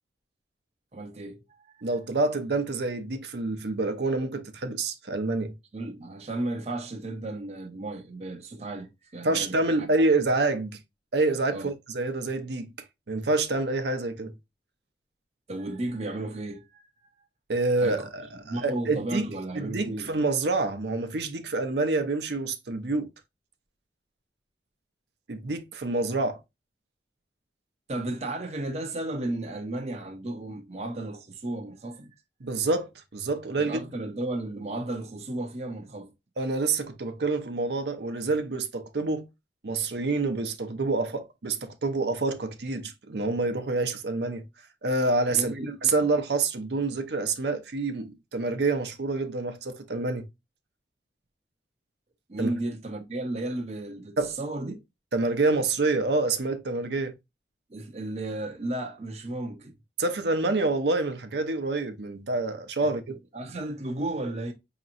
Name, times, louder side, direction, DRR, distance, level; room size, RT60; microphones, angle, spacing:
voice 1, 0.9-1.4 5.7-9.9 11.5-11.7 15.5-16.9 17.8-18.1 18.4-20.1 27.9-32.1 33.6-36.1 45.3-45.7 46.0-46.1 52.3-54.8 57.7-59.7 62.8-62.9 63.3-64.5, right 2 dB, 35° right, 0.6 m, -34 dB
voice 2, 1.8-5.5 9.2-10.8 11.1-12.7 13.1-14.3 17.5-19.3 19.6-23.1 25.3-26.4 32.4-33.8 36.4-39.3 39.6-44.4 44.8-50.3 52.4-52.5 54.2-54.4 55.1-57.1 60.0-63.2, right 3 dB, 75° right, 0.7 m, -27 dB
5.0 x 2.9 x 2.5 m
head